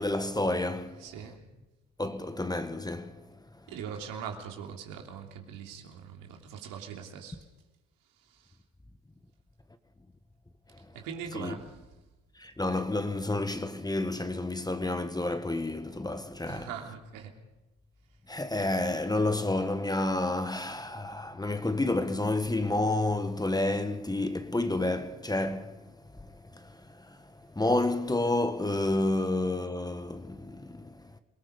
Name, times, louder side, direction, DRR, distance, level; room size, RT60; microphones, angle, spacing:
voice 1, 0.0-1.0 2.0-3.2 11.3-11.6 12.4-16.7 18.3-25.8 26.2-27.2 27.5-31.1, left 2 dB, 10° left, 1.5 m, -30 dB
voice 2, 1.0-1.4 3.7-7.4 8.3-8.5 10.9-11.8 16.5-17.3, right 7 dB, 70° right, 3.1 m, -41 dB
28.5 x 18.5 x 5.3 m
hypercardioid pair, 60°, 34 cm